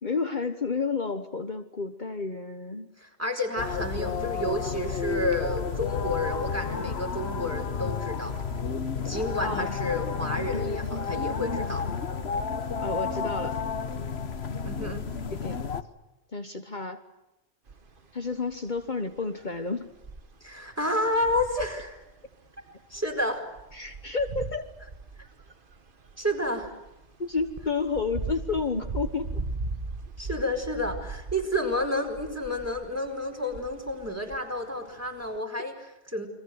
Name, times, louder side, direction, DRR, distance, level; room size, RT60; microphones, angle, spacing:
voice 1, 0.0-2.9 9.4-9.7 10.5-10.6 12.8-13.6 14.8-14.9 15.3-15.6 16.3-17.0 18.1-19.9 23.7-24.7 27.2-29.4 33.4-33.5, left 4 dB, 45° left, 7 dB, 1.4 m, -31 dB
voice 2, 3.0-8.4 9.0-11.9 14.6-15.1 20.4-22.0 22.9-23.5 26.2-26.7 30.2-36.3, left 1 dB, 15° right, 2 dB, 4.9 m, -30 dB
sound 1, 3.6-15.8, left 5 dB, 75° left, 1.5 m, -31 dB
sound 2, 17.7-18.1 18.3-19.7 19.9-35.4, right 3 dB, 55° right, 1.6 m, -39 dB
29.5 x 23.0 x 8.0 m, 0.93 s
omnidirectional pair, 1.1 m